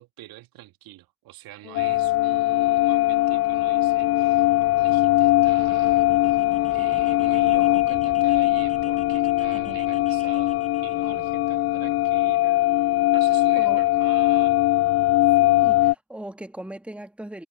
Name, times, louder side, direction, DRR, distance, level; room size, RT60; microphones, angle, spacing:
voice 1, 0.0-4.5 4.8-12.7 13.1-14.7, right 16 dB, 60° right, 2.3 m, -45 dB
Brass instrument, 1.6-8.0, left 17 dB, 75° left, 0.9 m, -41 dB
sound 1, 1.7-15.9, left 18 dB, 35° left, 0.4 m, -21 dB
sound 2, 5.0-11.1, left 3 dB, 20° left, 5.2 m, -47 dB
voice 2, 15.3-17.4, right 1 dB, 5° right, 1.7 m, -39 dB
figure-of-eight pair, 50°, 41 cm